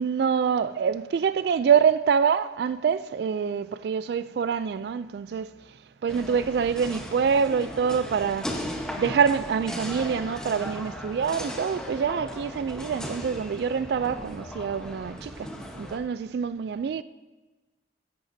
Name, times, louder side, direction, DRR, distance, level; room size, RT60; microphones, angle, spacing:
voice 1, 0.0-5.5 6.0-8.6 9.0-15.5 15.8-17.0, right 6 dB, 60° right, 0.3 m, -25 dB
sound 1, 6.1-16.0, equal, 5° left, 1.0 m, -37 dB
15.5 x 11.0 x 2.7 m
head